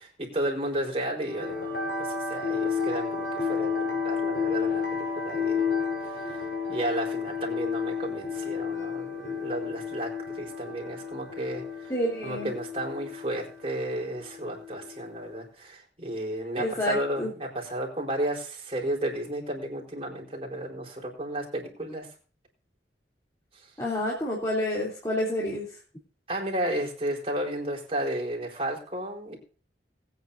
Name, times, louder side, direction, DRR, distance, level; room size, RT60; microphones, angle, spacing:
voice 1, 0.0-5.7 6.0-11.9 12.2-22.1 26.3-29.4, right 1 dB, 35° right, -1 dB, 4.4 m, -33 dB
sound 1, 1.2-15.3, left 5 dB, 75° left, 4.3 m, -32 dB
voice 2, 11.9-12.5 16.6-17.3 23.8-25.7, left 1 dB, 20° left, -5 dB, 3.3 m, -28 dB
21.0 x 9.3 x 2.7 m, 0.39 s
head